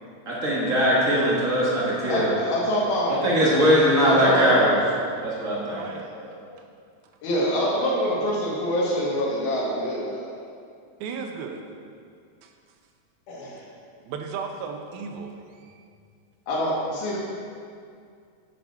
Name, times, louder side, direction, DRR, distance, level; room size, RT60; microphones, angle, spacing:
voice 1, 0.3-2.3 3.2-4.8 5.2-5.8, equal, 60° right, -6 dB, 0.8 m, -20 dB
voice 2, 2.1-3.2 4.0-4.7 6.1-6.4 7.2-10.3 13.3-13.6 16.5-17.2, equal, 85° left, -5 dB, 3.8 m, -25 dB
voice 3, 5.7-6.1 11.0-11.6 14.1-15.3, right 6 dB, 90° right, 4 dB, 2.5 m, -34 dB
9.8 x 7.1 x 4.6 m, 2.3 s
omnidirectional pair, 4.2 m